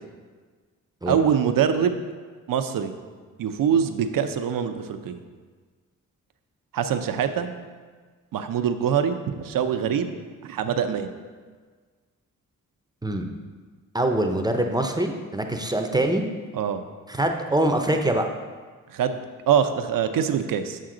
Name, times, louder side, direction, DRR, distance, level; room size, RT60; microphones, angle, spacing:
voice 1, 1.1-2.0 2.5-2.9 3.4-5.2 6.7-7.5 8.3-10.1 10.4-11.1 16.5-16.8 18.9-19.2 19.5-20.8, right 8 dB, 75° right, 8 dB, 0.6 m, -24 dB
voice 2, 13.9-16.2 17.1-18.3, right 1 dB, 10° right, 4 dB, 0.6 m, -24 dB
7.6 x 5.7 x 3.8 m, 1.5 s
cardioid pair, 85°, 33 cm